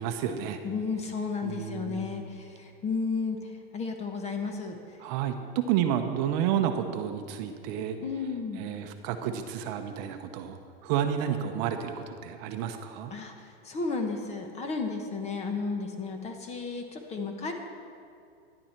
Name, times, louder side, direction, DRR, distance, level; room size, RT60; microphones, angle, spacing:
voice 1, 0.0-0.6 1.4-2.3 5.0-8.0 8.5-10.6 10.8-13.1, right 9 dB, 40° right, 6 dB, 0.8 m, -30 dB
voice 2, 0.6-4.8 8.0-8.6 13.1-13.3 13.6-17.5, left 4 dB, 20° left, 5 dB, 1.1 m, -33 dB
13.0 x 11.0 x 4.4 m, 2.5 s
supercardioid pair, 140°, 32 cm